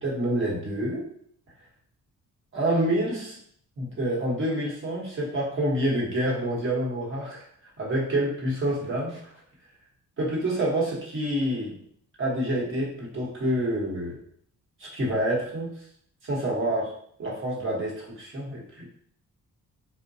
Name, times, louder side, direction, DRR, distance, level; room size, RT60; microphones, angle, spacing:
voice 1, 0.0-1.0 2.5-3.4 3.8-9.3 10.2-11.8 12.2-14.2 14.8-15.7 16.2-16.9 17.2-18.9, right 1 dB, 40° right, -4 dB, 1.0 m, -27 dB
3.8 x 2.1 x 2.6 m, 0.64 s
wide cardioid pair, 150°, 31 cm